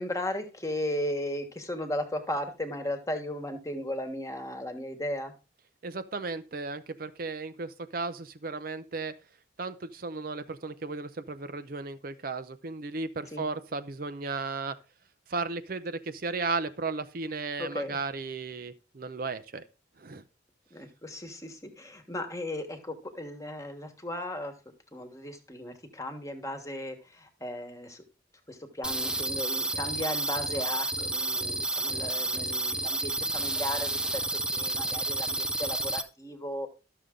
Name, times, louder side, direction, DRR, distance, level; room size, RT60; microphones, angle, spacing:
voice 1, 0.0-5.3 13.3-13.5 17.6-18.0 20.7-28.0 28.5-34.2 34.5-36.7, left 1 dB, 15° left, 1.3 m, -36 dB
voice 2, 5.8-9.1 9.6-14.7 15.3-19.6 20.0-20.2, right 3 dB, 50° right, 0.6 m, -35 dB
sound 1, 28.8-36.0, right 2 dB, 5° right, 0.5 m, -30 dB
12.0 x 6.8 x 3.7 m
head